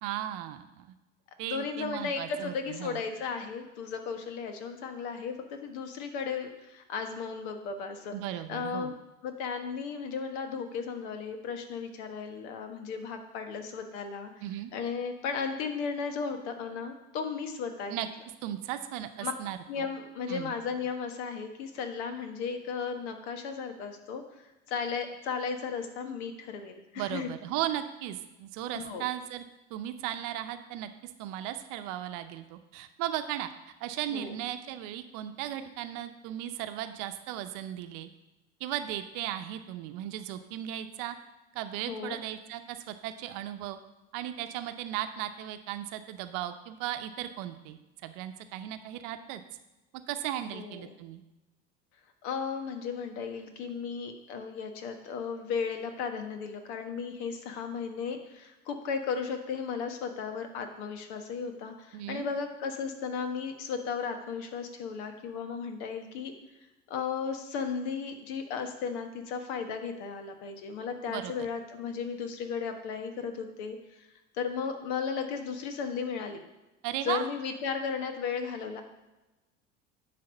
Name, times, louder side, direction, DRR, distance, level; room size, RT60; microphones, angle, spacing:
voice 1, 0.0-0.9 1.4-3.0 8.1-9.0 14.4-14.7 17.9-18.1 18.4-19.9 20.3-20.5 26.9-29.4 29.7-30.9 31.2-33.5 33.8-38.1 38.6-41.2 41.5-43.8 44.1-49.4 50.1-51.2 61.9-62.3 71.1-71.3 76.8-77.3, right 12 dB, 60° right, 9 dB, 0.8 m, -36 dB
voice 2, 1.5-8.1 8.5-8.9 9.2-14.3 14.7-18.0 19.2-19.3 19.7-27.3 28.7-29.0 34.1-34.3 41.9-42.2 50.5-50.9 52.2-66.3 66.9-74.1 74.3-76.4 77.0-78.8, left 6 dB, 65° left, 6 dB, 1.3 m, -35 dB
10.0 x 3.5 x 7.0 m, 1.1 s
hypercardioid pair, 75°, 35 cm